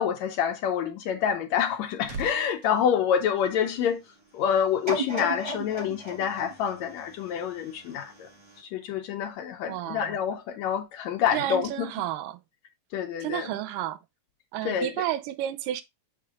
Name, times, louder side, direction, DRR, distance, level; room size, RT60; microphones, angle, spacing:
voice 1, 0.0-4.0 4.3-8.3 8.6-11.9 12.9-13.6 14.6-15.1, left 8 dB, 75° left, 1.8 m, -27 dB
sound 1, 1.6-4.0 4.3-4.6, right 2 dB, 65° right, 3.0 m, -43 dB
sound 2, 4.9-7.9 8.5-8.6, right 1 dB, 20° right, 0.8 m, -35 dB
voice 2, 9.7-10.2 11.3-12.4 13.2-14.0 14.5-15.8, right 12 dB, 85° right, 2.3 m, -31 dB
6.7 x 6.7 x 2.3 m
omnidirectional pair, 3.8 m